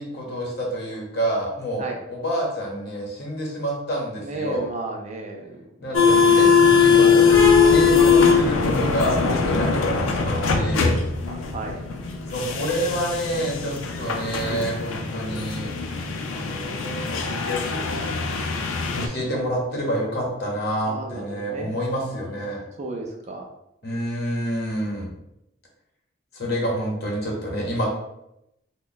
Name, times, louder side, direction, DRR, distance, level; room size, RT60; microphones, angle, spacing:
voice 1, 0.0-4.6 5.8-7.3 7.6-11.0 12.3-15.7 16.3-17.2 18.6-22.6 23.8-25.1 26.3-27.9, equal, 50° left, -2 dB, 1.0 m, -28 dB
voice 2, 4.2-6.4 6.7-7.3 7.6-7.8 10.3-11.8 20.8-21.7 22.0-22.3 22.8-23.5, right 2 dB, 35° right, 1 dB, 0.4 m, -35 dB
sound 1, 5.9-19.1, left 5 dB, 85° left, 0.4 m, -20 dB
sound 2, 7.3-14.6, equal, 10° left, 1.2 m, -32 dB
3.0 x 2.2 x 3.9 m, 0.83 s
head